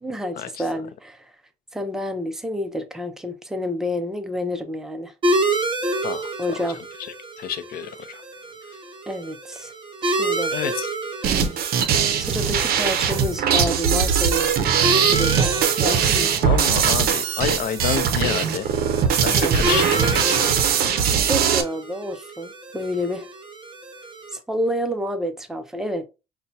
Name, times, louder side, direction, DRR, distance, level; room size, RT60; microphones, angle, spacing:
voice 1, 0.0-1.3 1.7-5.1 6.4-6.8 9.1-9.7 10.0-10.5 12.2-14.5 14.9-16.3 19.3-20.1 21.3-23.3 24.3-26.1, left 1 dB, 5° right, 0.5 m, -29 dB
sound 1, 5.2-24.4, right 2 dB, 30° right, 0.8 m, -29 dB
voice 2, 7.4-8.2 10.5-10.9 16.4-18.7 19.2-19.8 20.1-20.9, left 9 dB, 60° left, 0.5 m, -28 dB
sound 2, 11.2-21.6, right 7 dB, 65° right, 0.6 m, -21 dB
5.6 x 2.2 x 2.7 m
cardioid pair, 110°, 17 cm